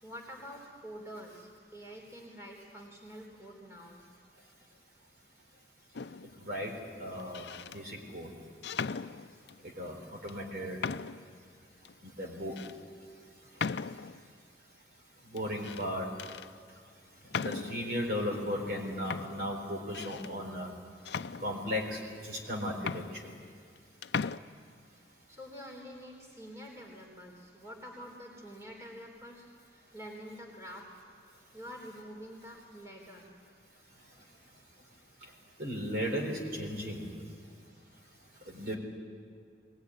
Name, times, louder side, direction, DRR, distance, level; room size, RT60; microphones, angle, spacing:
voice 1, 0.0-4.1 25.3-30.9 31.5-33.3 37.2-37.4, equal, 15° right, 0 dB, 3.6 m, -47 dB
sound 1, 5.9-6.4 7.2-7.8 8.6-9.6 10.3-10.4 10.8-11.3 11.8-11.9 12.6-12.7 13.6-14.2 15.4-15.9 16.2-16.5 17.3-17.9 18.7-18.8 19.1-20.3 21.0-21.9 22.5-22.6 22.8-23.8 24.0-24.4, left 5 dB, 70° left, 0.5 m, -38 dB
voice 2, 6.4-6.7 7.0-8.3 9.8-10.0 10.2-10.8 12.2-12.6 15.3-16.1 17.3-20.7 21.4-23.0 35.6-37.2 38.5-38.7, equal, 55° right, 0 dB, 4.1 m, -35 dB
21.5 x 19.5 x 9.8 m, 2.1 s
head